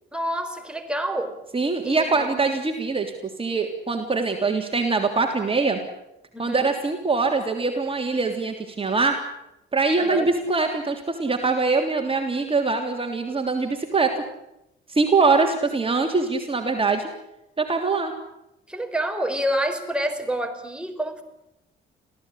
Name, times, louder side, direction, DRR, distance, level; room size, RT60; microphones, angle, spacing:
voice 1, 0.1-1.4 1.8-2.4 6.3-6.7 10.0-10.3 18.7-21.2, right 1 dB, 5° right, 5 dB, 4.5 m, -28 dB
voice 2, 1.5-3.1 3.4-5.8 6.4-9.1 9.7-14.1 14.9-17.1 17.6-18.1, right 4 dB, 30° right, 4 dB, 3.3 m, -23 dB
26.5 x 17.0 x 10.0 m, 0.86 s
cardioid pair, 90°, 20 cm